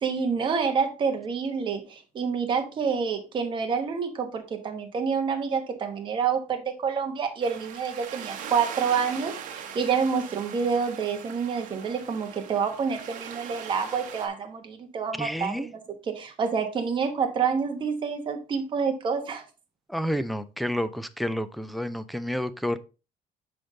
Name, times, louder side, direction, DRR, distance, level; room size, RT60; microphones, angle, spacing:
voice 1, 0.0-15.7 16.1-19.4, right 6 dB, 35° right, 1.2 m, -28 dB
sound 1, 7.4-14.3, right 7 dB, 65° right, 1.2 m, -40 dB
voice 2, 15.2-15.7 19.9-22.8, equal, ahead, 0.4 m, -30 dB
6.2 x 5.0 x 3.8 m
cardioid pair, 160°, 14 cm